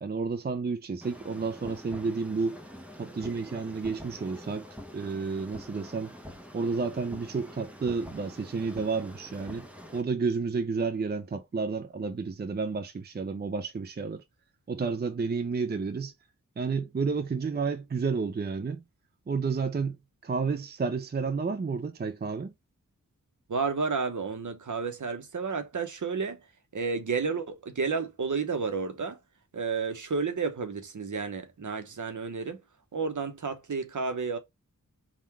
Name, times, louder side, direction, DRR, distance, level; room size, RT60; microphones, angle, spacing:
voice 1, 0.0-2.6 3.0-4.7 4.9-6.1 6.5-9.7 9.9-14.2 14.7-16.1 16.6-18.8 19.3-20.0 20.2-22.5, right 4 dB, 30° right, 0.5 m, -31 dB
sound 1, 1.0-10.0, equal, 5° right, 0.8 m, -45 dB
voice 2, 23.5-26.4 26.7-29.2 29.5-32.6 32.9-34.4, right 4 dB, 60° right, 1.0 m, -31 dB
3.7 x 2.4 x 4.4 m
wide cardioid pair, 70°, 34 cm